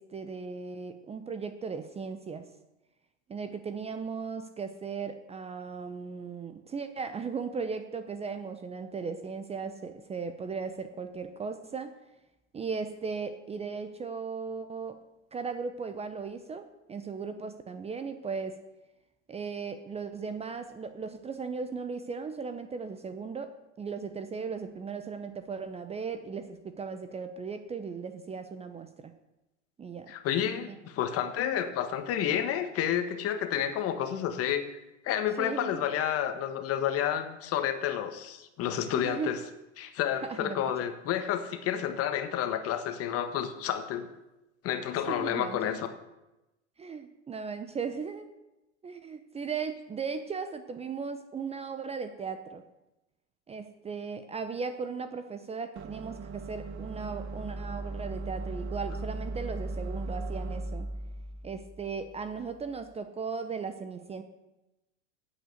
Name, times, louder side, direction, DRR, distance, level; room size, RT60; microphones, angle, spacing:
voice 1, 0.0-2.4 3.3-11.9 12.5-15.0 15.3-18.6 19.3-29.1 29.8-30.1 30.7-30.8 35.4-35.8 38.9-39.3 40.2-40.7 44.9-45.8 46.8-48.3 48.8-52.6 53.5-60.9 61.4-64.2, right 5 dB, 15° right, 9 dB, 0.8 m, -37 dB
voice 2, 30.1-34.8 35.0-39.4 39.8-44.1 44.6-45.9, left 10 dB, 40° left, 9 dB, 1.5 m, -30 dB
sound 1, 55.8-62.8, right 2 dB, 35° right, 1.1 m, -38 dB
9.2 x 8.2 x 8.0 m, 0.97 s
hypercardioid pair, 120°, 37 cm